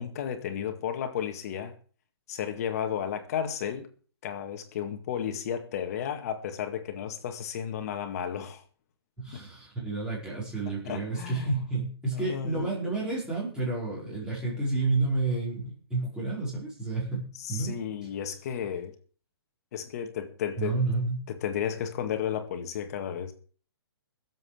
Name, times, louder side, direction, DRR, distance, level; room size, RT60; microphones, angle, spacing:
voice 1, 0.0-1.7 2.3-3.9 4.2-8.6 10.8-11.6 12.1-12.7 17.4-18.9 19.7-20.8 21.3-23.3, left 8 dB, 40° left, 2.0 m, -33 dB
voice 2, 9.2-17.7 20.6-21.2, right 3 dB, 5° right, 5.0 m, -30 dB
22.5 x 7.9 x 5.1 m
hypercardioid pair, 165°, 13 cm